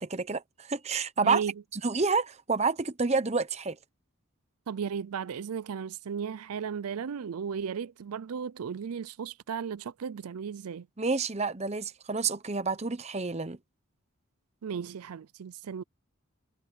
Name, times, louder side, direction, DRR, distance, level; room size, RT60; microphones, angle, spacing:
voice 1, 0.0-1.4 1.7-3.8 11.0-13.6, right 4 dB, 30° right, 0.8 m, -29 dB
voice 2, 1.2-1.5 4.7-10.9 14.6-15.8, right 7 dB, 85° right, 0.4 m, -35 dB
head